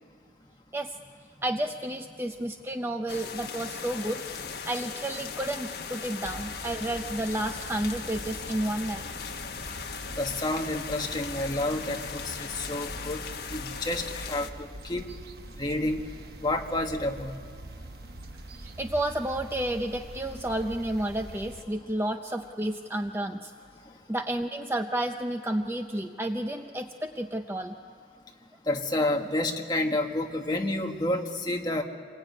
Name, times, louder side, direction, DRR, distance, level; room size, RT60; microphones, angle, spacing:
voice 1, 1.4-4.2 4.7-9.0 18.6-23.5 24.1-27.7, right 1 dB, 15° right, 5 dB, 0.7 m, -31 dB
sound 1, 3.1-14.5, left 5 dB, 60° left, 1.4 m, -38 dB
sound 2, 6.2-21.6, right 1 dB, 55° right, 1.1 m, -44 dB
voice 2, 10.2-13.2 13.5-15.1 15.6-16.0 16.4-17.4 20.3-20.4 28.7-31.8, left 1 dB, 20° left, 2 dB, 1.6 m, -29 dB
27.0 x 22.0 x 9.7 m, 2.1 s
head